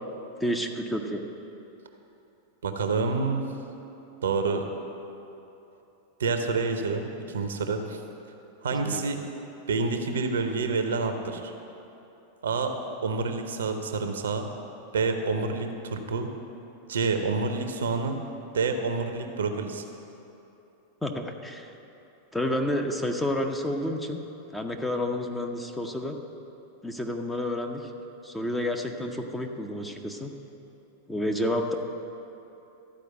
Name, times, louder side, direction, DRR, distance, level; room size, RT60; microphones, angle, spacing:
voice 1, 0.4-1.2 8.8-9.0 21.0-21.7 22.3-24.2 24.5-26.2 26.8-27.8 28.2-30.3 31.1-31.7, left 1 dB, 5° left, 3 dB, 0.8 m, -30 dB
voice 2, 2.6-3.4 4.2-4.7 6.2-8.0 8.6-9.2 9.7-11.5 12.4-12.7 13.0-14.5 14.9-16.3 16.9-18.2 18.5-19.8, right 4 dB, 65° right, 6 dB, 0.8 m, -28 dB
13.0 x 5.0 x 7.7 m, 2.9 s
figure-of-eight pair, 90°, 0 cm